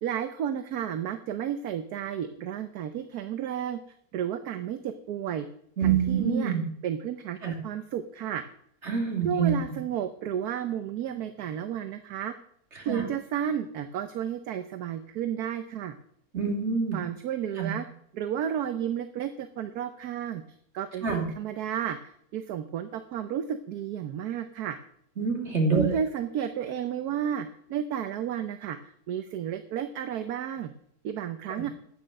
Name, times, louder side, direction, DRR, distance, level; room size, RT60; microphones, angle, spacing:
voice 1, 0.0-3.8 4.1-5.5 5.8-6.5 6.8-8.4 9.2-12.3 12.8-15.9 16.9-17.9 18.1-20.4 20.7-24.8 25.7-30.7 31.0-31.7, right 9 dB, 75° right, 9 dB, 1.2 m, -32 dB
voice 2, 5.8-6.6 7.4-7.5 8.8-9.5 12.8-13.0 16.3-17.0 17.6-17.7 21.0-21.2 25.2-25.8, right 6 dB, 45° right, 1 dB, 2.9 m, -26 dB
9.7 x 9.1 x 6.3 m, 0.69 s
omnidirectional pair, 1.7 m